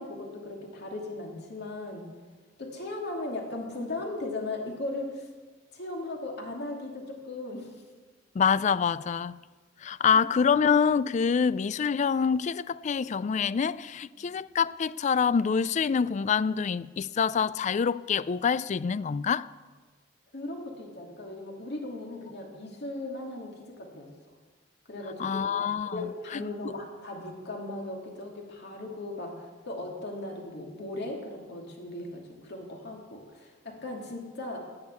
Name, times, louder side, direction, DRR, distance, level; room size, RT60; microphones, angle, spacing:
voice 1, 0.0-2.1 2.6-5.3 5.7-7.7 10.1-10.2 14.1-14.3 20.3-24.1 24.9-25.6 25.9-34.6, left 2 dB, 60° left, 2.7 m, -37 dB
voice 2, 8.3-9.4 9.8-19.5 25.2-26.4, left 6 dB, 40° left, 0.3 m, -26 dB
11.0 x 9.8 x 8.3 m
head